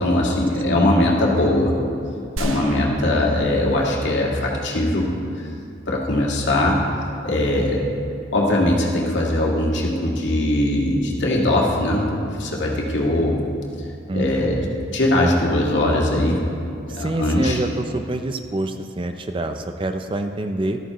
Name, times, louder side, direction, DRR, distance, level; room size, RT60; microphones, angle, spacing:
voice 1, 0.0-1.7 2.4-5.1 5.9-6.8 7.2-7.8 8.3-13.4 14.1-14.6 14.9-16.4 16.9-17.6, left 1 dB, 65° left, -3 dB, 1.9 m, -20 dB
sound 1, 2.4-4.3 4.6-4.7, right 1 dB, 90° right, 0.8 m, -33 dB
voice 2, 14.1-14.8 16.9-20.8, right 2 dB, 25° right, 7 dB, 0.4 m, -27 dB
14.0 x 13.0 x 3.0 m, 2.5 s
head